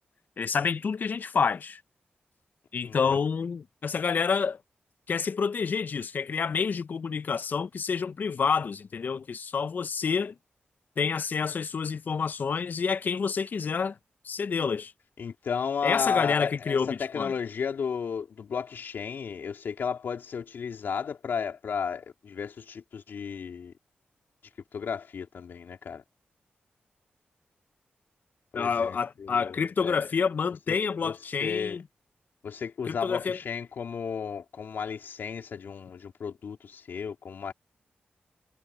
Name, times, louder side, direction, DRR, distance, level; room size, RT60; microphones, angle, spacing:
voice 1, 0.4-1.8 2.7-4.6 5.1-10.3 11.0-14.0 14.2-14.9 15.8-17.3 28.5-31.8 32.9-33.4, left 5 dB, 60° left, 0.6 m, -28 dB
voice 2, 2.8-3.2 15.2-23.7 24.7-26.0 28.5-30.0 30.7-31.8 32.4-37.5, left 6 dB, 80° left, 3.4 m, -34 dB
wide cardioid pair, 90°, 3 cm